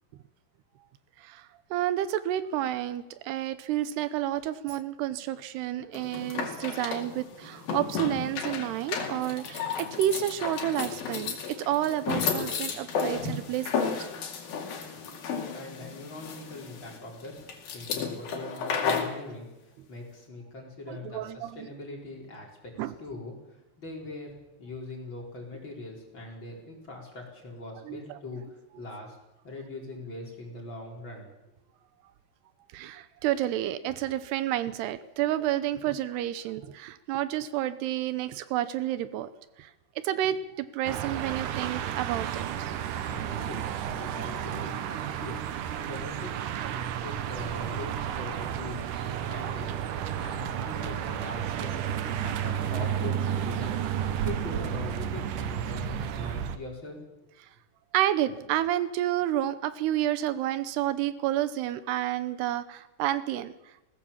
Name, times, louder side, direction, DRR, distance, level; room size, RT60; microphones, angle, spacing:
voice 1, 1.2-14.1 20.9-21.7 22.8-22.9 27.9-28.2 32.7-39.3 39.6-39.7 40.0-42.7 57.9-63.5, right 12 dB, 85° right, 14 dB, 2.9 m, -30 dB
sound 1, 5.9-19.2, left 6 dB, 65° left, 4.1 m, -33 dB
voice 2, 15.5-17.4 17.7-24.3 24.6-29.2 29.4-31.3 43.0-46.3 46.7-49.7 50.2-57.0, left 2 dB, 30° left, -1 dB, 5.0 m, -42 dB
sound 2, 40.9-56.6, right 9 dB, 70° right, 2.2 m, -32 dB
20.5 x 18.0 x 7.2 m, 0.97 s
omnidirectional pair, 4.7 m